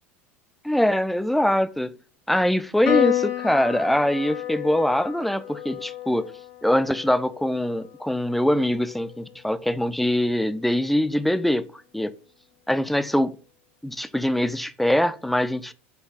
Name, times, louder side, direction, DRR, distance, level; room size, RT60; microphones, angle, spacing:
voice 1, 0.6-1.9 2.3-6.3 6.6-11.7 11.9-12.1 12.7-13.3 13.8-15.7, left 1 dB, ahead, 0.3 m, -23 dB
Piano, 2.9-9.5, left 12 dB, 60° left, 1.2 m, -31 dB
4.5 x 2.4 x 4.7 m
hypercardioid pair, 100°, 7 cm